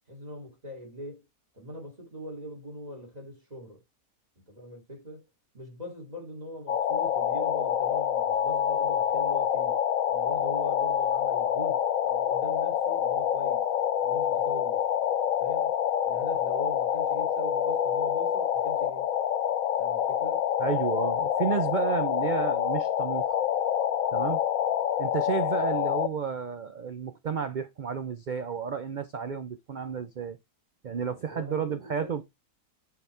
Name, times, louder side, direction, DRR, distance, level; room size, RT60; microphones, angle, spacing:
voice 1, 0.1-1.2 1.5-3.8 4.5-5.2 5.5-9.7 10.1-13.7 14.0-14.8 15.4-15.7 16.0-19.1 19.8-20.4 31.3-32.2, equal, 25° right, 2.9 m, -41 dB
sound 1, 6.7-26.1, left 9 dB, 70° left, 1.0 m, -27 dB
voice 2, 20.6-23.4 24.1-24.4 25.0-30.4 30.8-32.2, right 7 dB, 75° right, 0.4 m, -31 dB
7.8 x 5.1 x 3.3 m
omnidirectional pair, 1.5 m